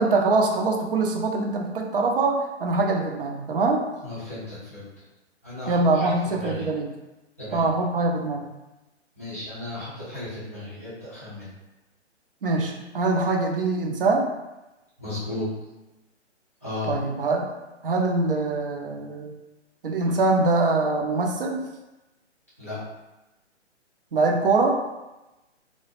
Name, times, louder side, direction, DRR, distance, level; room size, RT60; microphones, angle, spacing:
voice 1, 0.0-3.9 5.7-6.9 7.5-8.5 12.4-14.3 16.9-17.5 17.8-19.3 19.8-21.7 24.1-24.8, right 3 dB, 50° right, 1 dB, 0.5 m, -23 dB
voice 2, 4.0-4.9 5.4-6.7 7.4-7.7 9.2-11.5 15.0-15.5 16.6-16.9 22.6-22.8, left 2 dB, 15° left, -11 dB, 0.3 m, -35 dB
2.2 x 2.0 x 3.0 m, 1.0 s
figure-of-eight pair, 130°, 35 cm